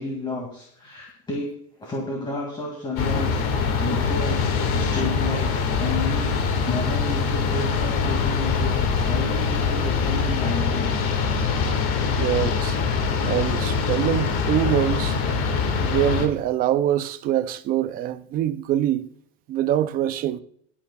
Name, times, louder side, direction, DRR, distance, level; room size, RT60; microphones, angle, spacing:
voice 1, 0.0-1.5 1.8-3.4 3.8-5.5 5.8-6.4 6.7-11.0, left 2 dB, 15° left, 2.2 m, -31 dB
sound 1, 3.0-16.3, left 5 dB, 40° left, 1.8 m, -23 dB
voice 2, 12.1-12.8 13.2-15.2 15.8-19.1 19.5-20.4, right 11 dB, 25° right, 0.4 m, -24 dB
22.0 x 8.5 x 2.3 m
cardioid pair, 170°, 33 cm